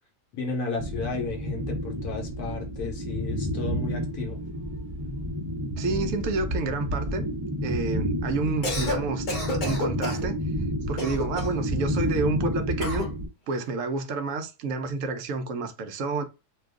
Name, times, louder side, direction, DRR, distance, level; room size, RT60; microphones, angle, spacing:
voice 1, 0.3-4.4, left 3 dB, 75° left, 1.2 m, -33 dB
sound 1, 0.8-13.3, equal, 30° right, 0.5 m, -30 dB
voice 2, 5.8-7.3 7.6-9.3 9.6-10.4 10.9-13.0 13.5-16.2, right 3 dB, 65° right, 0.8 m, -29 dB
Cough, 8.5-9.0 9.3-10.3 11.0-11.6 12.8-13.1, left 1 dB, 40° left, 0.8 m, -30 dB
2.7 x 2.3 x 3.6 m
omnidirectional pair, 1.7 m